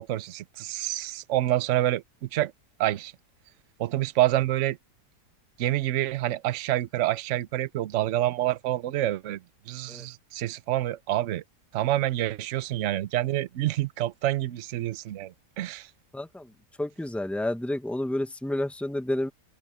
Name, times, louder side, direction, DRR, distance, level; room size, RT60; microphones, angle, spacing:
voice 1, 0.0-2.0 2.3-2.5 2.8-3.1 3.8-4.8 5.6-9.4 9.7-11.4 11.7-15.9, right 14 dB, 60° right, 0.9 m, -27 dB
voice 2, 16.1-16.5 16.8-19.3, left 1 dB, ahead, 0.4 m, -30 dB
open air
omnidirectional pair, 1.8 m